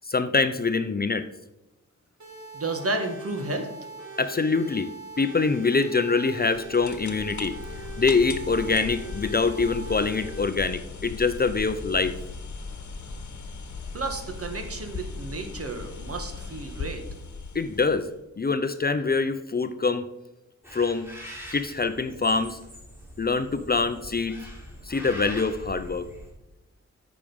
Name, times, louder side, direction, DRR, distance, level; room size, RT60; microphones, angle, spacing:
voice 1, 0.1-1.2 4.2-4.9 5.2-7.6 8.0-12.1 17.5-18.1 18.4-20.1 20.7-21.1 21.5-22.6 23.2-24.4 24.9-26.1, left 4 dB, 30° left, 11 dB, 0.5 m, -24 dB
sound 1, 2.2-10.4, right 2 dB, 65° right, 3.0 m, -42 dB
voice 2, 2.5-3.7 13.9-17.0, right 2 dB, 50° right, 5 dB, 1.5 m, -32 dB
sound 2, 6.5-18.2, left 4 dB, 75° left, 1.1 m, -38 dB
sound 3, 20.6-26.3, equal, 10° right, 3.1 m, -43 dB
8.4 x 5.0 x 5.4 m, 0.93 s
cardioid pair, 70°, 30 cm